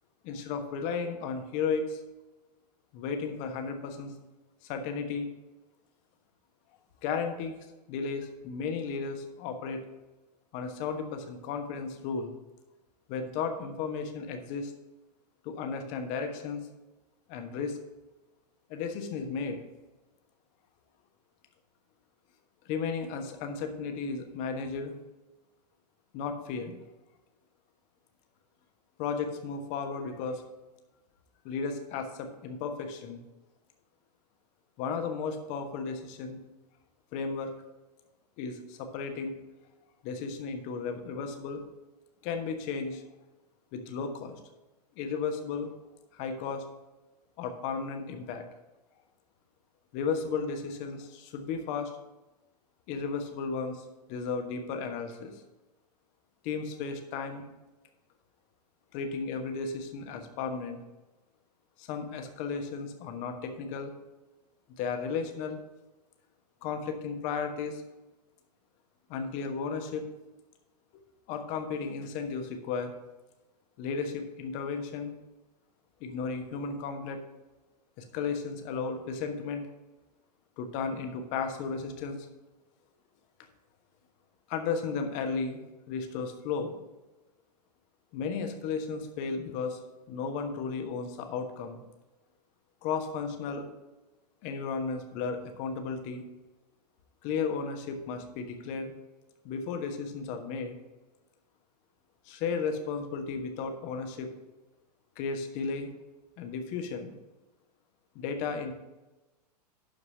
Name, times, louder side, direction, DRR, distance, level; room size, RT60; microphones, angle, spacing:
voice 1, 0.2-2.0 2.9-4.1 4.7-5.3 7.0-7.5 7.9-9.8 10.5-12.3 13.1-14.7 15.4-16.7 17.3-17.8 18.7-19.6 22.6-24.9 26.1-26.8 29.0-30.4 31.4-33.2 34.8-36.4 37.1-37.5 38.4-39.3 40.0-41.6 42.2-43.0 43.7-44.4 45.0-45.7 46.1-46.6 47.4-48.4 49.9-51.9 52.9-55.3 56.4-57.5 58.9-60.8 61.8-63.9 64.8-65.6 66.6-67.8 69.1-70.1 70.9-71.0 71.3-72.9 73.8-75.1 76.0-77.2 78.0-79.7 80.6-82.3 84.5-85.6 85.9-86.7 88.1-89.8 90.1-91.8 92.8-93.6 94.4-96.2 97.2-98.9 99.4-100.8 102.3-104.3 105.2-105.9 106.4-107.1 108.1-108.7, left 5 dB, 35° left, 6 dB, 1.3 m, -34 dB
11.5 x 4.7 x 5.6 m, 1.1 s
figure-of-eight pair, 100°, 21 cm